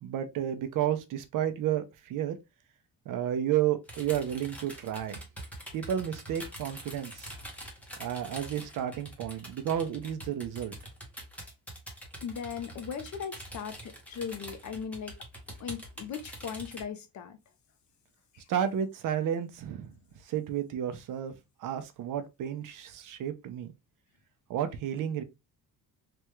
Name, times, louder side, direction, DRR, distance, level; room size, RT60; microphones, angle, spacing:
voice 1, 0.0-2.4 3.1-5.2 5.7-7.3 8.0-10.8 18.5-19.9 20.2-21.3 21.6-23.7 24.5-25.2, right 10 dB, 60° right, 0.6 m, -32 dB
sound 1, 3.9-16.8, right 1 dB, 5° left, 0.7 m, -45 dB
voice 2, 12.2-15.2 15.6-17.4 18.3-18.5, left 7 dB, 50° left, 0.6 m, -38 dB
3.4 x 2.2 x 3.0 m
cardioid pair, 180°, 38 cm